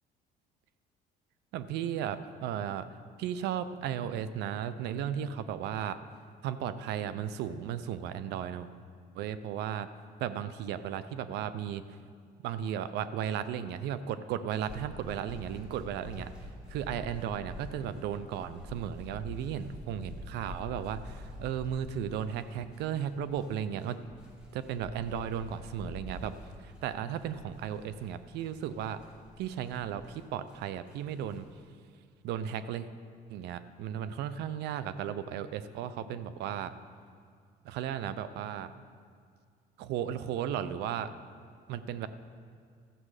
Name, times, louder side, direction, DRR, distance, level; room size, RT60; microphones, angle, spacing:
voice 1, 1.5-2.9 3.2-6.0 6.4-8.7 9.1-9.9 10.2-11.8 12.4-16.3 16.7-24.0 24.5-26.3 26.6-29.0 29.4-31.5 32.2-32.9 33.3-36.7 37.6-38.7 39.8-41.1 41.7-42.1, right 9 dB, 80° right, 13 dB, 0.5 m, -35 dB
sound 1, 14.6-30.6 30.9-31.5, left 1 dB, 5° right, 2.1 m, -47 dB
13.5 x 7.4 x 4.8 m, 2.1 s
cardioid pair, 110°, 17 cm